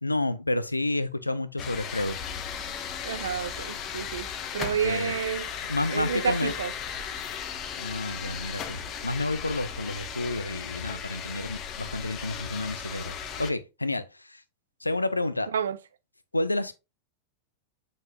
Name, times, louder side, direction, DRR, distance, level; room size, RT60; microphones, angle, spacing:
voice 1, 0.0-2.2 4.6-5.2 5.7-6.5 7.8-14.4 14.8-15.5 16.3-16.7, left 2 dB, 85° left, 0.6 m, -30 dB
sound 1, 1.6-13.5, left 7 dB, 35° left, 1.0 m, -36 dB
voice 2, 3.0-4.3 4.5-5.5 5.9-6.7 15.5-15.8, right 8 dB, 65° right, 0.6 m, -29 dB
7.4 x 5.3 x 2.8 m
figure-of-eight pair, 90°, 0 cm